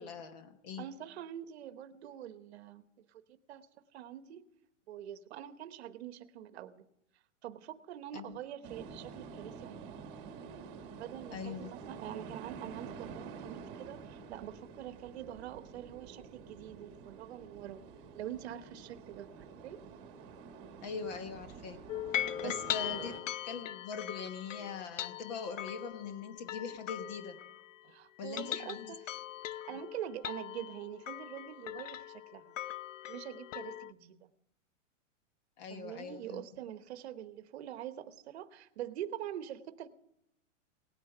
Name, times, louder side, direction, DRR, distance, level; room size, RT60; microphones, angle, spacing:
voice 1, 0.0-0.9 8.1-8.4 11.3-11.7 20.8-21.8 22.4-27.4 28.2-28.9 35.6-36.4, left 5 dB, 35° left, 9 dB, 1.1 m, -42 dB
voice 2, 0.8-3.2 3.5-3.7 3.9-4.5 4.9-6.9 7.4-10.1 11.0-17.8 18.1-19.8 22.4-22.6 22.9-23.1 27.8-29.1 29.5-32.5 33.1-34.3 35.7-39.9, right 11 dB, 55° right, 12 dB, 1.0 m, -45 dB
sound 1, 8.6-23.2, right 5 dB, 25° right, 1.3 m, -49 dB
sound 2, 21.9-27.8 28.2-33.9, left 12 dB, 85° left, 0.7 m, -40 dB
18.0 x 9.6 x 6.7 m, 0.79 s
supercardioid pair, 170°, 38 cm